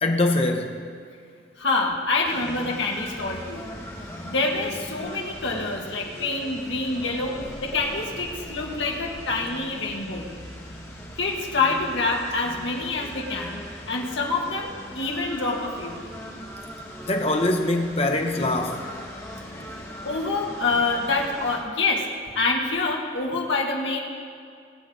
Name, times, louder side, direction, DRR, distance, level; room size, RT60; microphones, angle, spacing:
voice 1, 0.0-0.7 17.1-18.8, left 2 dB, 30° left, 1.0 m, -23 dB
voice 2, 1.6-3.7 4.3-10.3 11.2-16.0 20.0-22.1 22.3-24.0, left 3 dB, 80° left, 2.0 m, -26 dB
sound 1, 2.2-21.6, left 1 dB, 15° left, 1.4 m, -40 dB
22.5 x 8.0 x 3.9 m
head